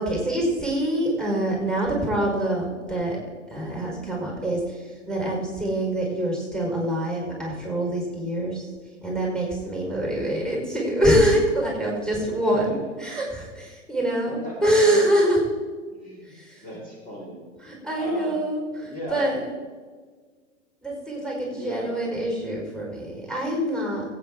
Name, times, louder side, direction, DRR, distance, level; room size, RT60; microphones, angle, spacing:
voice 1, 0.0-8.7 9.0-15.4 16.2-16.7 17.6-19.4 20.8-24.0, right 1 dB, ahead, -2 dB, 4.8 m, -25 dB
voice 2, 12.5-12.8 14.4-14.7 15.9-17.4 18.0-18.5 18.8-19.3 21.5-22.0, equal, 25° left, -4 dB, 4.1 m, -37 dB
23.0 x 9.1 x 3.7 m, 1.5 s
figure-of-eight pair, 105°, 37 cm